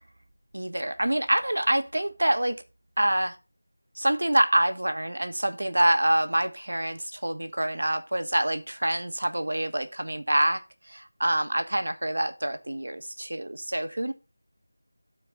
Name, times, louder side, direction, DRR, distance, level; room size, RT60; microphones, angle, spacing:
voice 1, 0.5-2.6 3.0-3.4 3.9-14.1, right 1 dB, 80° right, 1.3 m, -26 dB
12.5 x 4.5 x 3.8 m
figure-of-eight pair, 175°, 0 cm